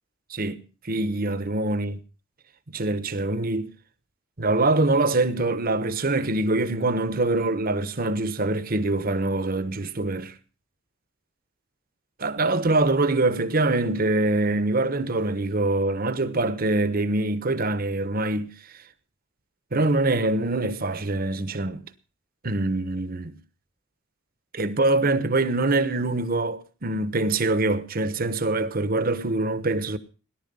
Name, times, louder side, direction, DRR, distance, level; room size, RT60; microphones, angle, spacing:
voice 1, 0.3-2.0 2.7-3.7 4.4-10.3 12.2-18.5 19.7-21.8 22.4-23.4 24.5-30.0, right 2 dB, 45° right, 1.2 m, -24 dB
18.0 x 11.5 x 5.5 m
head